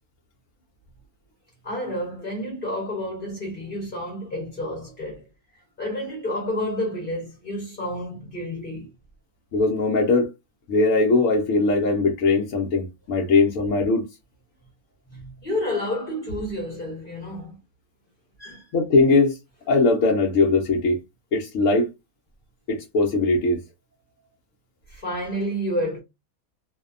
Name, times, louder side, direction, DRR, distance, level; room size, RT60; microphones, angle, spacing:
voice 1, 1.6-5.2 5.8-8.9 13.2-13.3 15.1-17.6 18.4-18.7 24.9-26.0, left 1 dB, 45° left, 1.0 m, -30 dB
voice 2, 9.5-10.3 10.7-14.0 18.7-19.3 19.7-21.0 21.3-21.8 22.7-23.6, left 3 dB, 70° left, 0.9 m, -20 dB
2.7 x 2.1 x 2.4 m
omnidirectional pair, 1.5 m